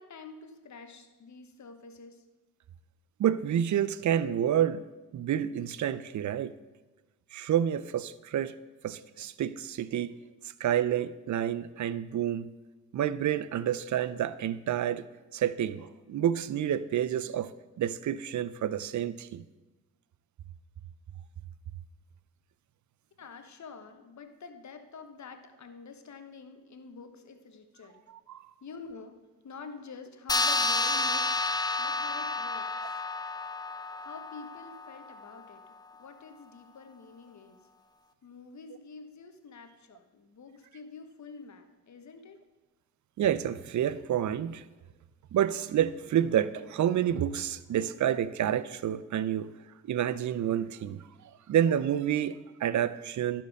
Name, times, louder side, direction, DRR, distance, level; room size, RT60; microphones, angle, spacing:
voice 1, 0.0-2.2 23.2-28.0 28.6-29.2 29.4-33.0 34.0-35.6 36.0-37.6 38.2-42.4, left 4 dB, 50° left, 7 dB, 1.1 m, -47 dB
voice 2, 3.2-4.8 5.1-6.5 7.3-8.5 8.8-10.2 10.6-12.5 12.9-15.0 15.3-17.5 17.8-19.4 28.3-28.4 43.2-44.6 45.3-49.5 49.8-51.1 51.5-53.4, right 10 dB, 55° right, 16 dB, 0.5 m, -29 dB
sound 1, 30.3-35.2, left 3 dB, 10° left, 0.5 m, -30 dB
11.5 x 4.4 x 4.8 m, 1.2 s
supercardioid pair, 45°, 35 cm